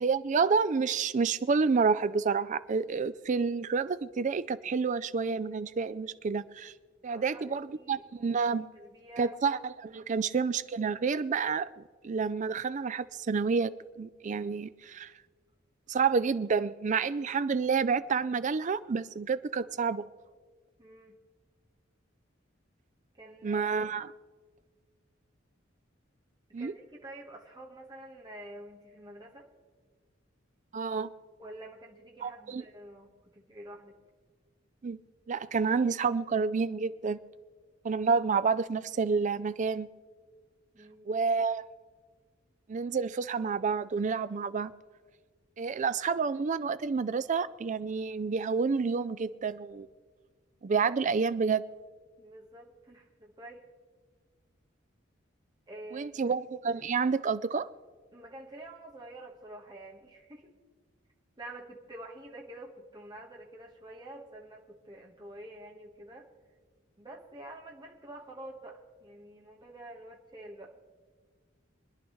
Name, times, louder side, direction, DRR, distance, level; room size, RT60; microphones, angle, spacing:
voice 1, 0.0-6.7 7.0-8.7 9.2-15.1 15.9-20.0 23.4-24.1 26.5-26.7 30.7-31.1 32.2-32.6 34.8-35.0 35.3-37.2 37.8-39.9 41.1-41.6 42.7-44.7 45.6-49.9 50.6-51.6 55.9-57.7, right 5 dB, 40° right, 15 dB, 0.4 m, -29 dB
voice 2, 7.1-8.0 8.7-9.3 20.8-21.2 23.1-23.7 26.5-29.5 31.4-34.0 40.7-41.2 52.2-53.7 55.7-56.3 58.1-60.5 61.4-66.3 67.0-70.7, right 1 dB, 20° right, -1 dB, 1.4 m, -48 dB
24.5 x 10.5 x 3.1 m, 1.5 s
head